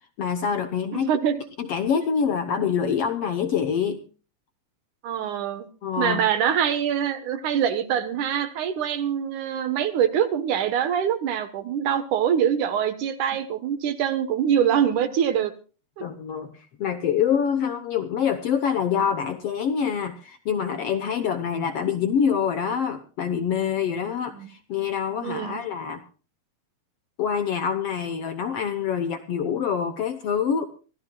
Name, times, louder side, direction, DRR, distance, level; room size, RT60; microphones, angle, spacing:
voice 1, 0.2-1.1 1.6-4.0 5.8-6.2 16.0-26.0 27.2-30.7, left 7 dB, 80° left, 9 dB, 1.3 m, -26 dB
voice 2, 0.9-1.4 5.0-5.7 6.0-15.5 16.0-16.1 24.3-24.5 25.2-25.6, right 9 dB, 65° right, 10 dB, 2.4 m, -24 dB
25.5 x 15.0 x 2.3 m, 0.36 s
omnidirectional pair, 4.2 m